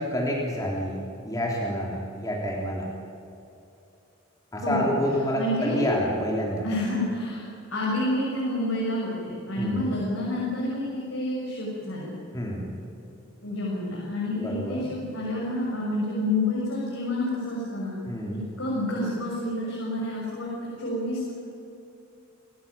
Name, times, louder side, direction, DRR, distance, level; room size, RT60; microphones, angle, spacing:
voice 1, 0.0-2.9 4.5-6.6 9.6-9.9 12.3-12.7 14.4-14.9 18.1-18.4, equal, 15° left, -2 dB, 3.5 m, -28 dB
voice 2, 4.6-4.9 5.4-5.8 6.6-7.4 7.7-12.2 13.4-17.9 18.3-21.3, left 1 dB, 75° left, -5 dB, 7.0 m, -29 dB
28.5 x 17.0 x 8.9 m, 2.7 s
head